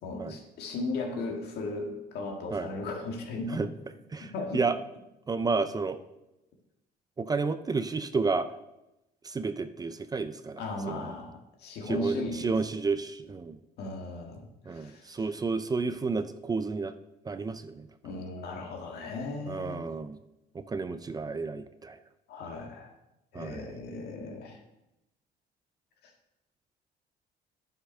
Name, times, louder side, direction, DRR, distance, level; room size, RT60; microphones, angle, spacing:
voice 1, 0.0-3.6 4.2-4.6 10.6-11.3 11.6-12.6 13.8-15.3 18.0-19.9 22.3-22.9 23.3-24.6, left 2 dB, 75° left, 2 dB, 1.9 m, -36 dB
voice 2, 4.1-4.8 5.3-6.0 7.2-8.5 9.2-10.6 10.9-11.1 11.9-13.6 14.7-16.9 17.3-17.9 19.5-20.2 20.5-22.0 23.3-23.7, right 4 dB, 20° right, 11 dB, 0.5 m, -31 dB
10.0 x 5.9 x 5.4 m, 0.92 s
cardioid pair, 110°, 17 cm